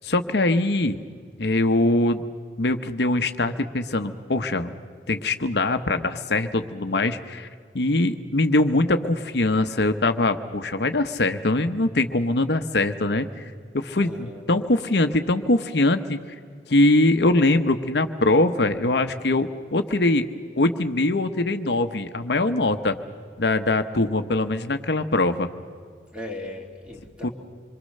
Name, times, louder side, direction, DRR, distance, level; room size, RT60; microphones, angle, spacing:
voice 1, 0.0-1.0 1.4-2.2 2.6-4.7 5.1-7.5 7.7-13.4 13.7-16.2 16.7-20.3 20.6-23.0 23.4-25.5 27.2-27.3, left 2 dB, 70° left, 7 dB, 0.9 m, -22 dB
voice 2, 14.0-14.4 26.1-27.3, left 1 dB, 5° right, 1 dB, 2.9 m, -37 dB
26.5 x 23.0 x 6.6 m, 2.1 s
head